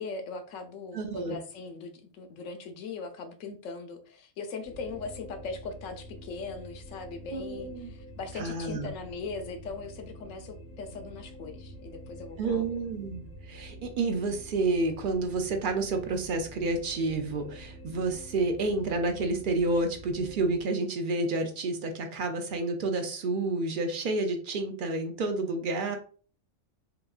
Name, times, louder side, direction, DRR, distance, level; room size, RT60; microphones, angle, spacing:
voice 1, 0.0-12.7, left 4 dB, 75° left, 6 dB, 0.9 m, -40 dB
voice 2, 0.9-1.4 7.3-7.9 8.4-8.9 12.4-26.0, right 2 dB, 75° right, 5 dB, 0.4 m, -30 dB
sound 1, 4.6-20.6, right 1 dB, 40° right, 0.7 m, -47 dB
3.4 x 2.9 x 2.3 m, 0.40 s
omnidirectional pair, 1.4 m